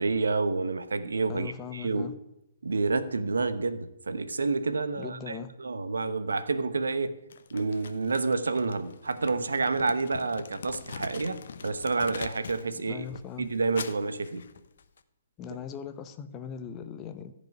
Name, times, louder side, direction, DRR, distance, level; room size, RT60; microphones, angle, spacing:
voice 1, 0.0-2.1 2.6-7.2 7.5-13.0 13.4-14.5, right 3 dB, 70° right, 1.0 m, -29 dB
voice 2, 1.3-2.1 5.0-5.5 12.7-13.5 15.4-17.3, left 7 dB, 20° left, 0.9 m, -40 dB
Crumpling crinkling, 7.3-12.7 13.0-15.0, left 6 dB, 55° left, 0.9 m, -43 dB
14.5 x 5.3 x 9.4 m
figure-of-eight pair, 125°, 0 cm